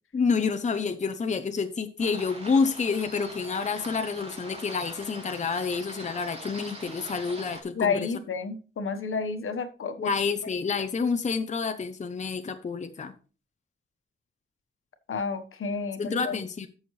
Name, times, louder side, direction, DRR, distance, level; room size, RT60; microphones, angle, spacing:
voice 1, 0.1-8.1 10.0-13.1 16.0-16.7, left 5 dB, 35° left, 0.7 m, -28 dB
sound 1, 2.0-7.6, right 1 dB, 30° right, 3.1 m, -42 dB
voice 2, 7.7-10.1 15.1-16.4, left 5 dB, 75° left, 1.3 m, -30 dB
13.5 x 6.3 x 3.2 m
wide cardioid pair, 175°, 21 cm